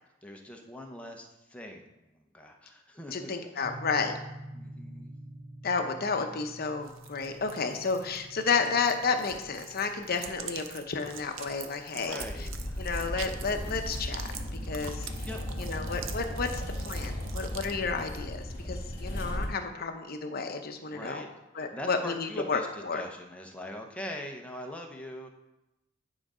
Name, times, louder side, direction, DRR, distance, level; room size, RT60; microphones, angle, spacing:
voice 1, 0.2-3.7 4.5-5.1 11.9-12.8 14.8-15.8 20.9-21.3 21.6-25.3, left 1 dB, 5° left, 1 dB, 0.8 m, -43 dB
voice 2, 3.1-4.2 5.6-12.2 12.8-14.3 14.7-15.1 15.6-21.3 21.5-23.0, left 4 dB, 50° left, 6 dB, 0.7 m, -31 dB
sound 1, 3.6-13.8, right 1 dB, 30° right, 0.8 m, -49 dB
sound 2, 6.8-17.7, right 7 dB, 75° right, 0.6 m, -45 dB
sound 3, 12.2-19.5, left 1 dB, 25° left, 2.0 m, -36 dB
9.7 x 3.9 x 4.9 m, 0.95 s
head